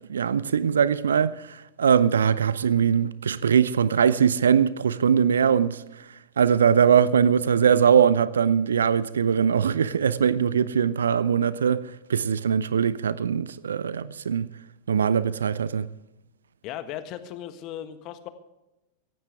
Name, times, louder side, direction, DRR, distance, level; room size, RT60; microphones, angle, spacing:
voice 1, 0.1-5.8 6.4-11.8 12.1-14.5 14.9-15.9, right 7 dB, 70° right, 0.6 m, -21 dB
voice 2, 16.6-18.3, left 11 dB, 40° left, 1.5 m, -37 dB
17.5 x 15.5 x 3.5 m
figure-of-eight pair, 90°, 0 cm